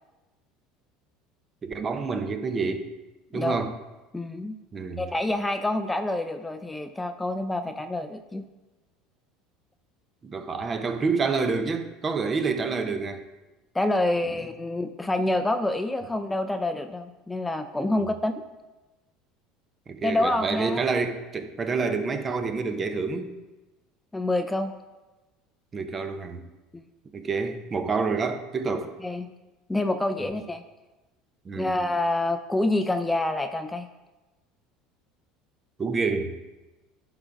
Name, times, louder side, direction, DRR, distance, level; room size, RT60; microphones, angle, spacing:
voice 1, 1.6-2.9 3.3-3.7 4.7-5.0 10.2-13.2 17.9-18.1 19.9-23.3 25.7-26.4 27.1-28.9 30.2-30.3 31.4-31.8 35.8-36.5, right 4 dB, 30° right, 8 dB, 0.9 m, -28 dB
voice 2, 4.1-4.6 5.0-8.4 13.7-18.3 20.0-20.9 24.1-24.7 26.7-26.8 29.0-29.3 29.7-30.6 31.6-33.9, left 1 dB, 10° left, 8 dB, 0.5 m, -27 dB
11.0 x 3.9 x 4.7 m, 1.1 s
hypercardioid pair, 85°, 0 cm